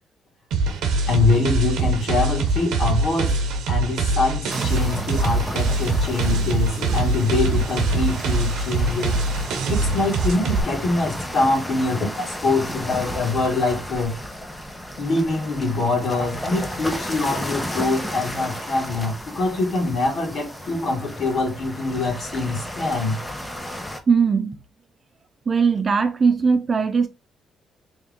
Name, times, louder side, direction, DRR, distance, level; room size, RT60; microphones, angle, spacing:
sound 1, 0.5-10.6, right 3 dB, 85° right, 0.9 m, -23 dB
voice 1, 1.1-3.4 3.7-9.2 9.7-14.2 15.0-23.2, left 3 dB, 65° left, 1.9 m, -24 dB
sound 2, 4.5-24.0, equal, 10° left, 0.8 m, -33 dB
voice 2, 24.1-24.6 25.5-27.1, right 5 dB, 40° right, 0.6 m, -19 dB
3.5 x 2.7 x 3.6 m
cardioid pair, 90°, 0 cm